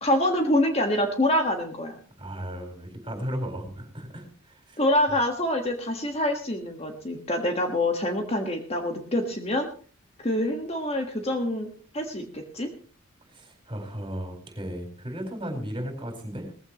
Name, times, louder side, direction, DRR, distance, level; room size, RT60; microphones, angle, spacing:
voice 1, 0.0-1.9 4.8-9.7 10.2-11.7 11.9-12.7, left 1 dB, 30° left, 4 dB, 1.5 m, -26 dB
voice 2, 2.2-4.8 13.3-16.5, equal, 25° right, 3 dB, 4.4 m, -35 dB
18.5 x 15.0 x 3.0 m, 0.41 s
head